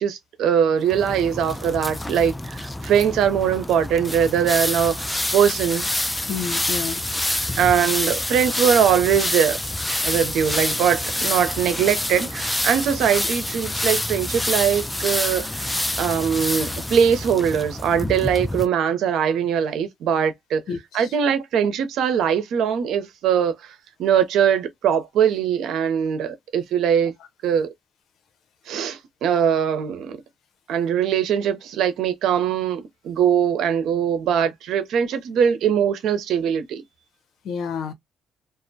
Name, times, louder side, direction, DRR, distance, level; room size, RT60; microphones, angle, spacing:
voice 1, 0.0-5.9 7.6-9.6 10.0-20.6 20.9-23.7 24.0-27.1 27.4-27.7 28.7-30.2 30.7-36.8, right 8 dB, 80° right, 0.6 m, -21 dB
sound 1, 0.9-18.7, left 1 dB, 10° left, 0.3 m, -27 dB
voice 2, 6.3-7.0 20.7-21.1 37.4-37.9, left 6 dB, 75° left, 0.7 m, -29 dB
2.3 x 2.1 x 2.6 m
cardioid pair, 90°, 0 cm